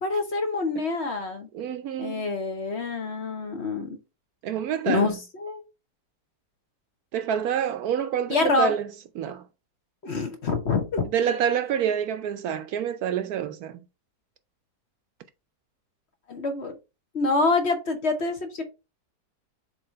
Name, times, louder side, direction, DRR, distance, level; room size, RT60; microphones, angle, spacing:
voice 1, 0.0-1.5 2.0-4.0 4.9-5.6 8.3-8.7 10.0-11.0 16.3-16.7 17.1-18.6, left 3 dB, 45° left, 1.1 m, -26 dB
voice 2, 1.5-2.3 4.4-5.2 7.1-8.9 9.2-9.4 11.1-13.8, right 8 dB, 70° right, 1.0 m, -27 dB
7.1 x 3.0 x 4.4 m
omnidirectional pair, 1.8 m